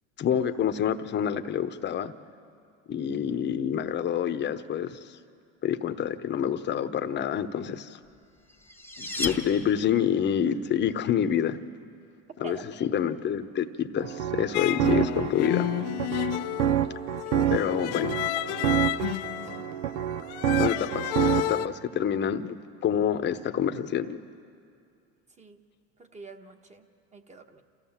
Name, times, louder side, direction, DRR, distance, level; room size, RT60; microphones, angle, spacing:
voice 1, 0.2-2.1 2.9-5.2 5.6-8.0 9.0-11.6 12.4-15.7 17.5-18.2 20.6-22.6 22.8-24.2, left 9 dB, 30° left, 10 dB, 0.9 m, -27 dB
voice 2, 3.1-3.5 12.4-12.7 17.2-17.9 18.5-18.6 19.4-19.5 25.4-25.6 26.0-26.9 27.1-27.6, right 5 dB, 20° right, 6 dB, 1.3 m, -47 dB
sound 1, 8.1-10.2, left 2 dB, 5° left, 1.0 m, -35 dB
sound 2, 14.0-21.6, right 11 dB, 75° right, 0.7 m, -28 dB
sound 3, 14.5-21.7, left 16 dB, 65° left, 0.7 m, -31 dB
28.0 x 15.0 x 7.3 m, 2.4 s
supercardioid pair, 115°, 35 cm